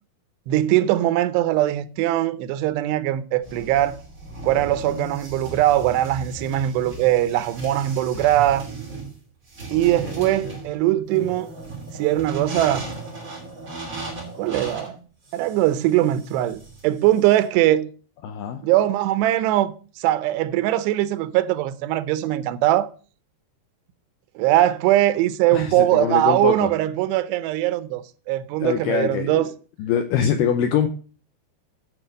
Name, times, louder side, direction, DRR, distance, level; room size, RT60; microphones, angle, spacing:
voice 1, 0.5-4.0 4.4-8.7 9.7-11.5 11.9-12.8 14.4-14.9 15.3-17.9 18.6-22.9 24.4-29.5, right 14 dB, 90° right, 2.8 m, -21 dB
sound 1, 3.4-17.4, right 2 dB, 20° right, 2.8 m, -36 dB
voice 2, 9.7-10.6 18.2-18.7 25.5-26.7 28.6-29.5 29.8-30.9, left 8 dB, 85° left, 1.9 m, -24 dB
9.9 x 4.6 x 7.5 m
omnidirectional pair, 4.8 m